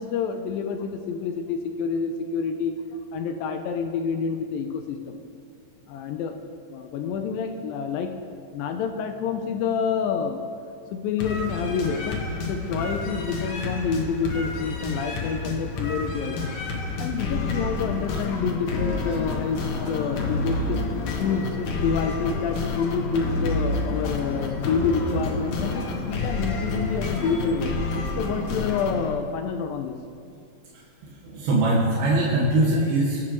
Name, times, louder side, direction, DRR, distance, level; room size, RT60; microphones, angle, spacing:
voice 1, 0.0-2.7 3.1-5.2 5.9-6.3 6.7-8.1 8.5-10.4 10.9-16.6 17.0-20.8 21.2-27.7 28.2-30.0, left 6 dB, 80° left, 5 dB, 2.2 m, -28 dB
sound 1, 11.2-29.1, left 3 dB, 65° left, 2.1 m, -29 dB
voice 2, 30.7-33.2, right 2 dB, 85° right, -5 dB, 3.3 m, -22 dB
21.5 x 7.5 x 3.0 m, 2.3 s
omnidirectional pair, 4.3 m